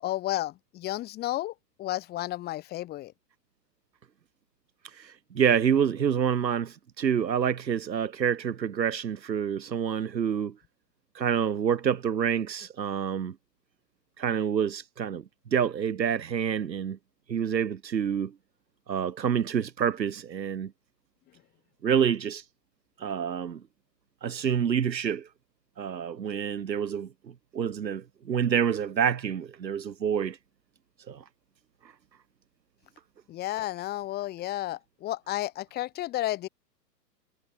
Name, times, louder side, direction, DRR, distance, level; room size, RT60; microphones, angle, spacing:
voice 1, 0.0-3.1 33.3-36.5, left 15 dB, 20° left, 1.2 m, -32 dB
voice 2, 5.0-10.5 11.1-13.3 14.2-15.2 15.5-17.0 17.3-18.3 18.9-20.7 21.8-22.4 23.0-23.6 24.2-25.3 25.8-27.1 27.5-30.4 31.1-31.2, right 8 dB, 85° right, 2.3 m, -27 dB
hypercardioid pair, 130°, 50 cm